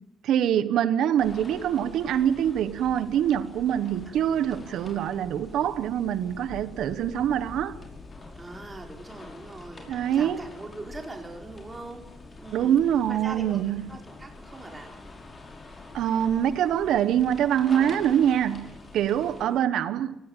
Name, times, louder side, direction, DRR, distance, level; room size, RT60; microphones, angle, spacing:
voice 1, 0.2-7.8 9.9-10.4 12.5-13.9 15.9-20.2, right 10 dB, 80° right, 1.1 m, -24 dB
sound 1, 1.2-19.4, left 3 dB, 35° left, 5.4 m, -45 dB
voice 2, 4.0-4.7 5.0-5.3 8.3-12.0 12.4-12.8 13.1-13.6 13.9-14.9 19.4-19.6, right 2 dB, 20° right, 5.0 m, -42 dB
23.0 x 18.0 x 9.1 m
cardioid pair, 90°, 0 cm